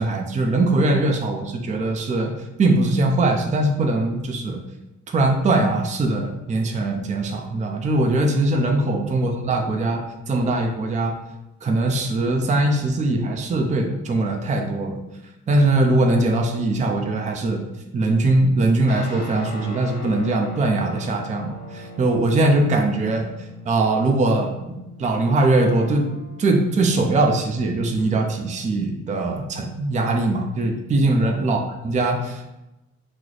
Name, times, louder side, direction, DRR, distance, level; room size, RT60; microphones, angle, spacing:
voice 1, 0.0-4.6 5.1-11.1 11.6-15.0 15.5-17.6 17.9-23.3 23.6-24.5 25.0-26.1 26.4-32.6, right 2 dB, 25° right, 3 dB, 0.4 m, -21 dB
sound 1, 18.9-28.6, equal, 30° left, 0.9 m, -40 dB
3.0 x 2.0 x 3.8 m, 0.93 s
cardioid pair, 90°, 30 cm